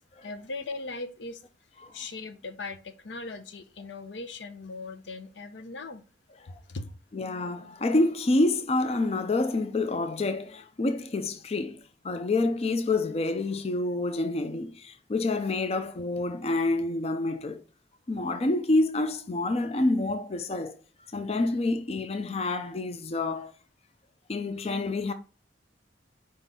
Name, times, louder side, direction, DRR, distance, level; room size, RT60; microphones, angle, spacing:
voice 1, 0.2-1.4 1.9-6.0 6.7-6.9, left 3 dB, 75° left, 0.7 m, -39 dB
voice 2, 7.1-11.8 12.0-17.6 18.1-20.8 21.1-23.5 24.3-25.1, left 2 dB, 35° left, 0.4 m, -27 dB
4.9 x 3.8 x 5.5 m
head